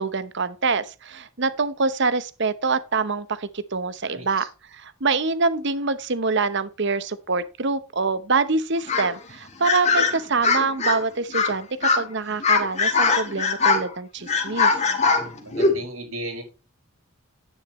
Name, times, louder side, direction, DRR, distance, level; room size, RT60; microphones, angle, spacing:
voice 1, 0.0-14.7, right 4 dB, 55° right, 0.9 m, -25 dB
voice 2, 4.1-4.5 14.9-16.4, right 1 dB, 80° right, 5.2 m, -36 dB
sound 1, 8.9-9.1 9.6-11.0 11.3-11.6 11.8-12.0 12.4-13.9 14.3-15.8, left 4 dB, 30° left, 1.9 m, -21 dB
10.0 x 10.0 x 3.1 m
head